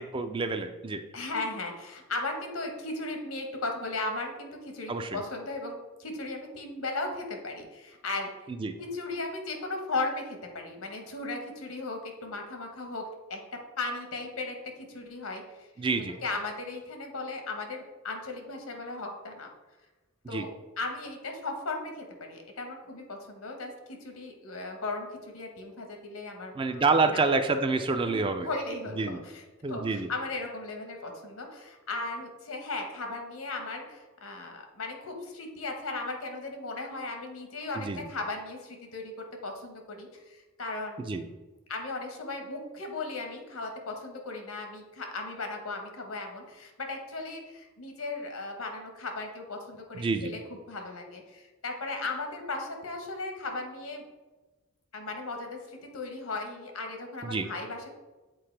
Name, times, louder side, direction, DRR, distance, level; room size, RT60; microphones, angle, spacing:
voice 1, 0.0-1.0 4.9-5.2 8.6-8.7 15.8-16.2 20.3-20.5 26.5-28.5 29.0-29.2 29.6-30.1 37.8-38.0 41.0-41.2 49.9-50.3 57.2-57.5, right 3 dB, 25° right, 8 dB, 0.3 m, -28 dB
voice 2, 1.1-8.3 8.8-13.0 13.3-13.4 13.8-14.5 14.9-15.7 16.2-19.5 20.3-20.5 20.8-23.7 24.0-27.2 28.0-41.1 41.7-50.4 50.7-54.0 54.9-57.9, left 3 dB, 90° left, 3 dB, 1.1 m, -36 dB
7.6 x 4.2 x 3.3 m, 1.2 s
head